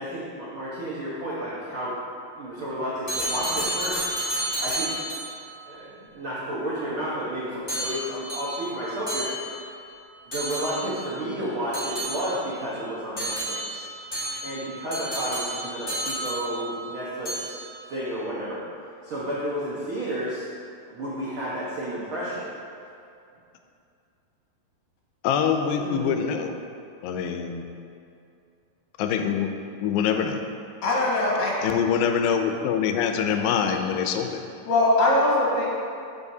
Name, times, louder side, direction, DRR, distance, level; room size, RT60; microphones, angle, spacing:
voice 1, 0.0-1.9 2.3-4.0 4.6-4.9 5.7-9.5 10.3-13.9 14.4-17.6 17.9-18.6 19.0-20.5 20.9-22.5, equal, 75° right, -8 dB, 1.2 m, -31 dB
sound 1, 3.1-5.5 7.7-9.8 10.3-11.1 11.7-12.6 13.2-16.9 17.2-17.8, right 1 dB, 25° left, 1.0 m, -31 dB
voice 2, 25.2-26.5 27.0-27.7 29.0-29.5 29.8-30.4 31.6-34.4, left 7 dB, 90° left, 5 dB, 2.4 m, -24 dB
voice 3, 25.8-26.2 30.8-31.6 34.6-35.7, left 2 dB, 70° left, -5 dB, 3.2 m, -22 dB
13.0 x 5.2 x 2.7 m, 2.5 s
omnidirectional pair, 4.1 m